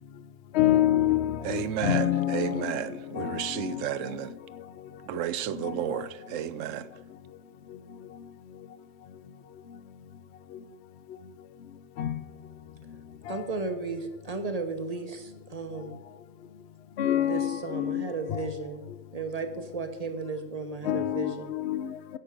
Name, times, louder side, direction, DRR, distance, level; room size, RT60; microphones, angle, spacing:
voice 1, 0.5-3.8 5.6-6.0 12.0-12.2 13.3-13.4 17.0-18.5 20.8-22.2, left 12 dB, 60° left, 0.8 m, -27 dB
voice 2, 1.4-4.3 5.0-6.9, right 10 dB, 70° right, 0.9 m, -32 dB
voice 3, 13.3-16.0 17.2-18.8 19.1-21.5, right 3 dB, 30° right, 1.0 m, -34 dB
15.5 x 6.2 x 5.1 m
omnidirectional pair, 1.4 m